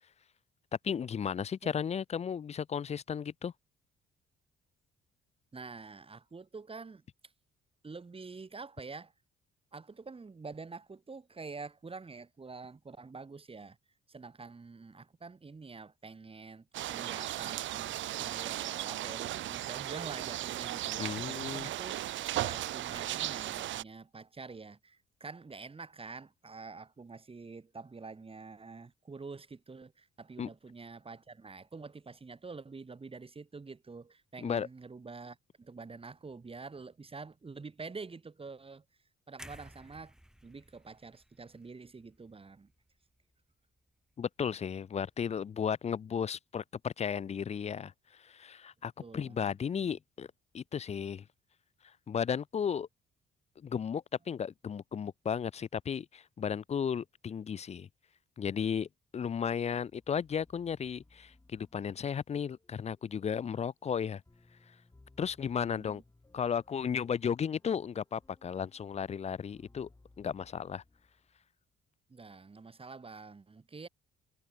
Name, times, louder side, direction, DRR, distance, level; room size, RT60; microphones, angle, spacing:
voice 1, 0.8-3.5 21.0-21.7 30.4-30.5 34.4-34.7 44.2-50.3 50.5-51.2 52.1-52.9 53.6-57.9 58.4-58.9 59.1-64.2 65.2-66.0 66.3-69.9 70.2-70.8, left 7 dB, 35° left, 0.5 m, -34 dB
voice 2, 5.5-7.0 7.8-9.1 9.7-13.8 14.1-21.9 22.3-38.8 39.3-40.1 40.4-42.7 49.0-50.0 65.7-66.0 72.1-73.9, right 4 dB, 30° right, 4.0 m, -47 dB
sound 1, 16.7-23.8, right 14 dB, 70° right, 0.7 m, -36 dB
sound 2, 39.4-43.4 43.8-44.0, equal, 5° right, 2.1 m, -55 dB
sound 3, 59.6-71.6, left 2 dB, 15° left, 6.8 m, -64 dB
cardioid pair, 90°, 20 cm